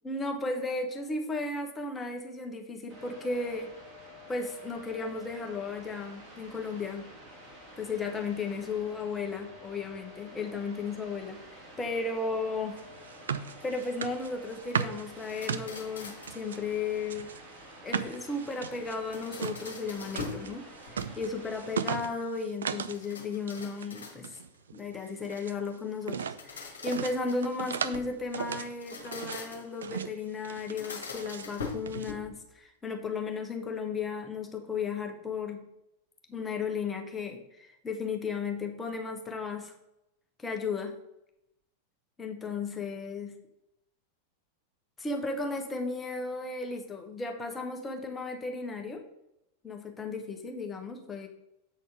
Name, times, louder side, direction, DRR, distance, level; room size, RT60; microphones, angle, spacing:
voice 1, 0.0-3.7 4.3-7.1 7.8-12.9 13.6-17.3 17.8-24.4 24.7-35.7 36.3-39.7 40.4-41.0 42.2-43.3 45.0-49.0 49.6-51.3, left 4 dB, 15° left, 3 dB, 1.1 m, -35 dB
sound 1, 2.9-21.9, equal, 35° right, 2.7 m, -50 dB
sound 2, 12.8-16.6 17.0-23.0 23.3-23.9 24.2-25.6 26.0-26.4 26.9-28.0 28.3-29.4 29.8-30.2 30.4-31.5 31.9-32.1, right 7 dB, 65° right, 0.4 m, -37 dB
sound 3, 15.2-16.4 18.8-20.5 20.8-21.5 22.9-24.5 26.1-28.2 28.7-29.8 30.6-32.4, left 4 dB, 65° left, 1.3 m, -43 dB
7.9 x 4.2 x 4.9 m, 0.85 s
figure-of-eight pair, 90°, 0 cm